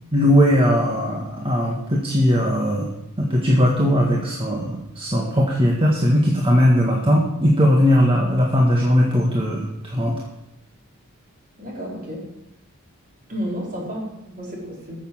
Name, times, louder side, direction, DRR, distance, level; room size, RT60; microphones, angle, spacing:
voice 1, 0.1-2.9 3.2-10.1, equal, 25° right, -2 dB, 1.7 m, -19 dB
voice 2, 11.6-12.3 13.3-14.9, equal, 40° right, -3 dB, 4.7 m, -31 dB
13.5 x 7.3 x 7.3 m, 0.86 s
head